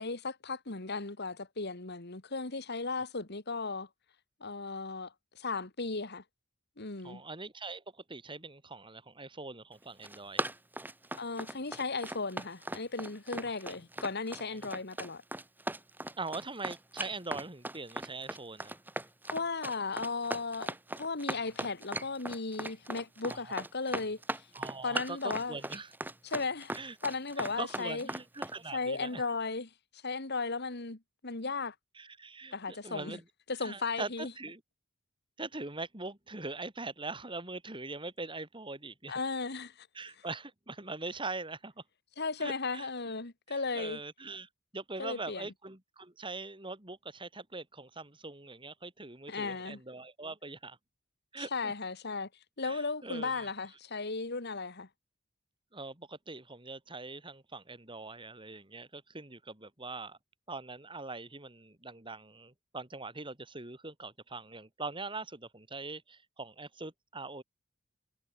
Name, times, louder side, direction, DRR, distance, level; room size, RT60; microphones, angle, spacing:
voice 1, 0.0-3.9 4.4-6.2 6.8-7.2 11.2-15.2 19.3-24.5 24.8-25.6 26.2-26.7 27.0-28.1 28.7-31.7 32.5-33.2 33.5-34.3 39.1-39.9 42.2-44.0 45.0-45.5 49.3-49.8 51.4-52.3 52.6-54.9, left 4 dB, 55° left, 2.0 m, -36 dB
voice 2, 7.0-10.4 13.4-13.6 14.5-14.7 16.2-18.8 23.2-23.5 24.5-25.9 26.7-27.0 27.4-29.2 31.9-33.2 33.6-34.6 35.4-39.1 39.9-41.8 42.4-42.9 43.5-50.8 51.3-51.7 52.6-53.5 55.7-60.2 60.5-67.4, right 3 dB, 25° right, 4.5 m, -42 dB
Run, 9.8-28.6, right 1 dB, 10° right, 2.6 m, -38 dB
head